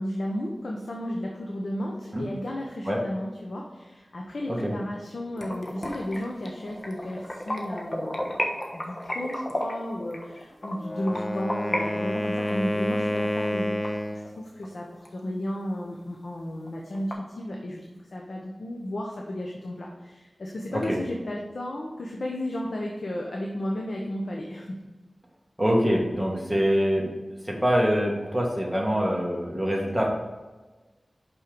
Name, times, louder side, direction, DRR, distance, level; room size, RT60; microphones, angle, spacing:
voice 1, 0.0-8.4 8.7-17.8 18.1-24.8, left 1 dB, 75° left, -1 dB, 0.9 m, -33 dB
sound 1, 5.4-11.8 12.1-14.7 15.0-15.1 15.6-15.7 16.0-16.1 16.4-17.1, left 1 dB, 50° left, 1.2 m, -33 dB
Wind instrument woodwind instrument, 10.8-14.3, left 1 dB, 20° left, 0.5 m, -29 dB
voice 2, 25.6-27.1 27.4-30.2, equal, 5° right, -2 dB, 1.8 m, -24 dB
5.7 x 5.6 x 5.2 m, 1.2 s
wide cardioid pair, 65°, 0 cm